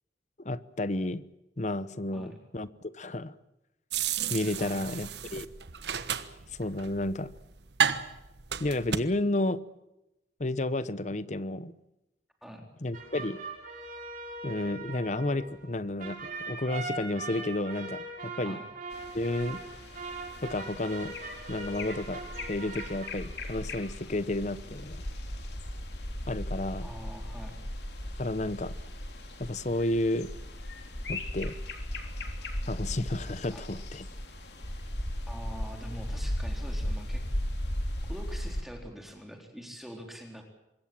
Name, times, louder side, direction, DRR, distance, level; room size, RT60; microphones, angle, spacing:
voice 1, 0.4-1.2 1.6-3.4 4.3-5.5 6.5-7.3 8.6-9.6 10.4-11.7 12.8-13.4 14.4-18.6 19.1-19.6 20.4-21.1 21.5-22.2 22.5-25.0 26.3-26.9 28.2-28.7 29.4-30.3 31.1-31.5 32.7-34.1, left 1 dB, 40° left, 16 dB, 0.9 m, -31 dB
sound 1, 3.9-9.0, right 7 dB, 75° right, 1.3 m, -32 dB
sound 2, 12.9-23.1, right 3 dB, 45° right, 6.6 m, -41 dB
sound 3, 18.9-38.6, left 1 dB, 70° left, 3.7 m, -37 dB
voice 2, 26.8-27.6 33.5-33.7 35.3-37.2 38.1-40.4, equal, ahead, 2 dB, 3.8 m, -44 dB
25.0 x 21.5 x 7.5 m, 0.91 s
head